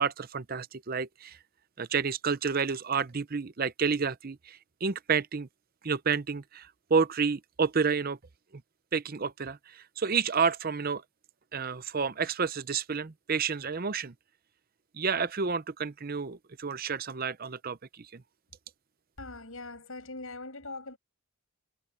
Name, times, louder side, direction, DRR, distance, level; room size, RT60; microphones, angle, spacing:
voice 1, 0.0-1.4 1.8-5.5 5.8-8.2 8.9-11.0 11.5-14.1 14.9-18.2, right 5 dB, 40° right, 0.6 m, -30 dB
voice 2, 19.2-21.0, left 2 dB, 70° left, 6.3 m, -41 dB
head